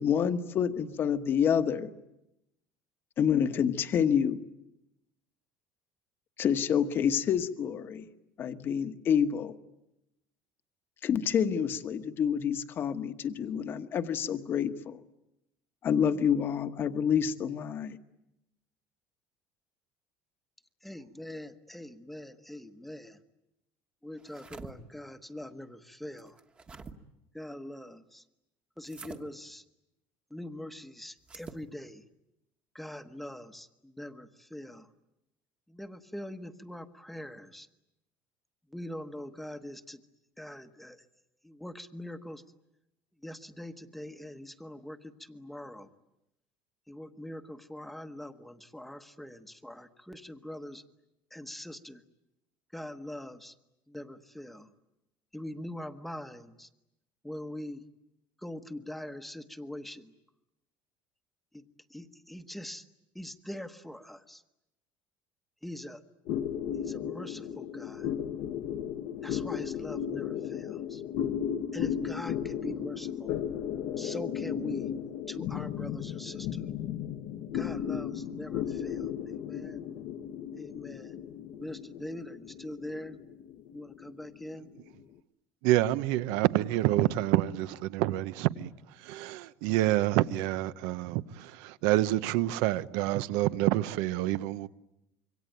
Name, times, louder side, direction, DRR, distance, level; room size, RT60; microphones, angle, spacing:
voice 1, 0.0-1.9 3.2-4.4 6.4-8.0 8.4-9.5 11.0-15.0 15.8-18.0, left 8 dB, 35° left, 1.2 m, -28 dB
voice 2, 20.8-23.2 24.0-26.4 27.3-28.2 28.8-29.6 30.3-32.0 32.7-34.9 35.7-37.7 38.7-40.0 40.4-41.0 41.4-42.4 43.2-45.9 46.9-50.8 51.3-52.0 52.7-53.5 53.9-54.7 55.3-56.7 57.2-57.8 58.4-60.1 61.5-61.6 61.9-62.8 63.1-64.4 65.6-66.0 66.8-68.1 69.2-71.0 71.7-73.3 74.0-74.9 75.3-76.6 77.5-79.8 80.6-81.1 81.6-83.2 83.7-84.7, left 1 dB, ahead, 1.1 m, -43 dB
sound 1, 24.2-24.7 26.2-26.9 28.8-29.2 31.2-31.6, right 4 dB, 15° right, 1.3 m, -46 dB
sound 2, 66.3-85.0, left 9 dB, 60° left, 1.0 m, -35 dB
voice 3, 85.6-94.7, right 15 dB, 80° right, 1.0 m, -28 dB
26.5 x 24.0 x 9.3 m
cardioid pair, 170°, 7 cm